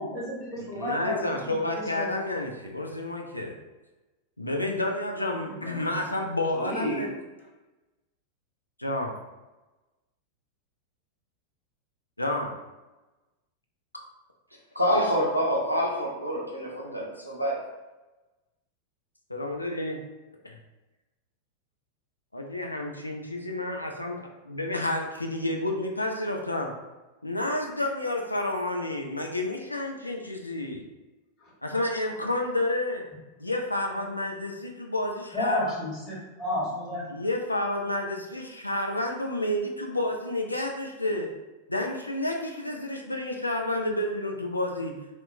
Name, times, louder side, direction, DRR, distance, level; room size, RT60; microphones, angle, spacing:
voice 1, 0.0-2.2 5.4-5.9 6.5-7.0 31.4-31.5 35.3-37.0, left 1 dB, 30° left, -7 dB, 1.2 m, -32 dB
voice 2, 0.7-3.5 4.4-7.1 8.8-9.1 12.2-12.5 19.3-20.0 20.4-20.6 22.3-26.7 27.2-30.8 31.6-33.0 33.4-35.7 37.1-41.3 41.7-45.0, left 1 dB, 85° left, 1 dB, 0.3 m, -30 dB
voice 3, 14.8-17.6, equal, 90° right, -2 dB, 0.5 m, -26 dB
2.8 x 2.1 x 2.5 m, 1.1 s
figure-of-eight pair, 90°, 0 cm